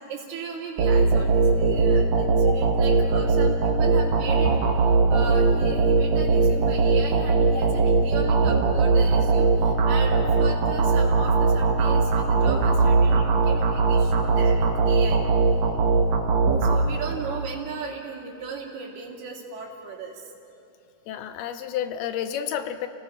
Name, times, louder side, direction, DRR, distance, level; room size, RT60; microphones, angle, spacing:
voice 1, 0.1-15.2 16.6-20.3, right 4 dB, 90° right, -2 dB, 4.5 m, -36 dB
sound 1, 0.8-17.4, right 4 dB, 60° right, 2.1 m, -20 dB
voice 2, 21.1-22.9, left 9 dB, 90° left, 9 dB, 2.8 m, -30 dB
29.5 x 17.5 x 5.7 m, 2.8 s
omnidirectional pair, 4.3 m